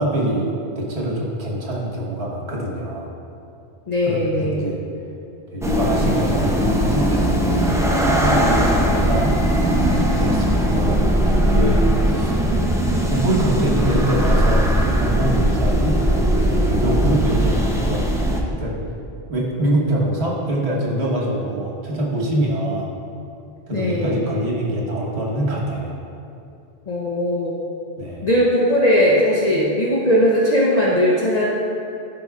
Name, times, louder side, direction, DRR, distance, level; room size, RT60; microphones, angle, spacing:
voice 1, 0.0-3.1 4.0-4.8 5.5-7.6 8.0-9.4 9.7-12.4 13.1-18.1 18.5-18.8 19.3-22.9 23.7-26.0 28.0-28.3, right 1 dB, 90° right, -3 dB, 1.5 m, -24 dB
voice 2, 3.9-4.7 23.7-24.3 26.9-27.5 28.2-31.5, equal, 45° left, -5 dB, 0.8 m, -19 dB
sound 1, 5.6-18.4, right 1 dB, 5° right, 0.4 m, -19 dB
12.5 x 5.3 x 2.3 m, 2.6 s
omnidirectional pair, 1.1 m